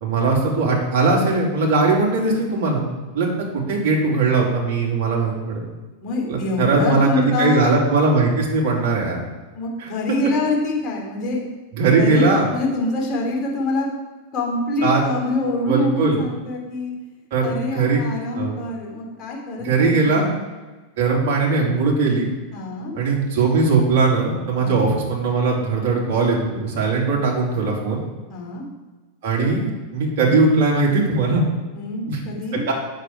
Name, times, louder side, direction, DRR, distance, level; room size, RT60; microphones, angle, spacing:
voice 1, 0.0-2.8 3.1-3.3 3.5-5.6 6.3-9.2 9.8-9.9 11.8-12.5 14.8-15.0 15.6-16.2 17.3-18.1 18.3-18.5 19.6-20.3 21.0-22.3 22.9-28.0 29.2-31.4 32.1-32.7, right 3 dB, 50° right, -2 dB, 3.0 m, -19 dB
voice 2, 6.0-7.7 9.5-11.4 11.9-13.9 14.3-16.9 17.4-20.3 22.5-22.9 24.6-24.9 28.3-28.7 31.7-32.6, left 2 dB, 35° left, -2 dB, 3.2 m, -25 dB
8.4 x 6.8 x 4.8 m, 1.2 s
figure-of-eight pair, 90°, 0 cm